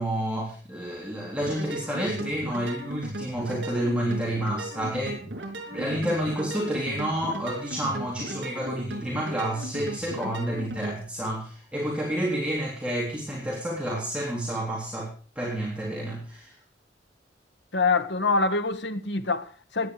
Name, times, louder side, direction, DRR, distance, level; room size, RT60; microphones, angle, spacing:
voice 1, 0.0-5.4 5.7-16.5, right 1 dB, 5° right, 3.6 m, -30 dB
sound 1, 1.4-11.0, right 1 dB, 85° right, 4.4 m, -37 dB
voice 2, 17.7-19.9, left 3 dB, 80° left, 1.4 m, -25 dB
16.5 x 10.5 x 4.9 m
head